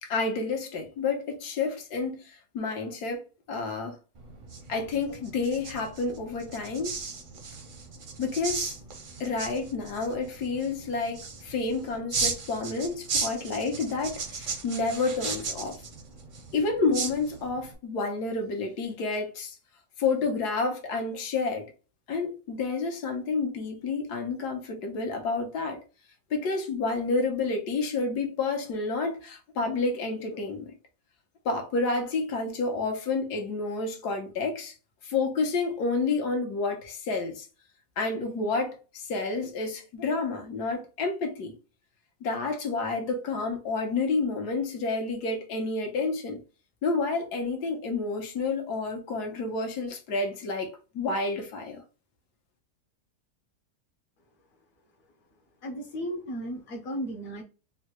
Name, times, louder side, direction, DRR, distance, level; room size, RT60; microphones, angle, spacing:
voice 1, 0.0-3.2 3.5-4.0 4.7-6.9 8.2-8.8 9.2-15.8 16.5-19.5 20.0-21.7 22.1-25.8 26.3-30.7 31.4-34.7 35.0-37.5 38.0-41.5 42.2-46.4 46.8-51.8, left 3 dB, 85° left, 1.4 m, -29 dB
sound 1, 4.1-17.7, right 5 dB, 60° right, 0.5 m, -36 dB
voice 2, 55.6-57.4, equal, 65° left, 1.1 m, -35 dB
3.8 x 2.1 x 2.8 m
omnidirectional pair, 1.7 m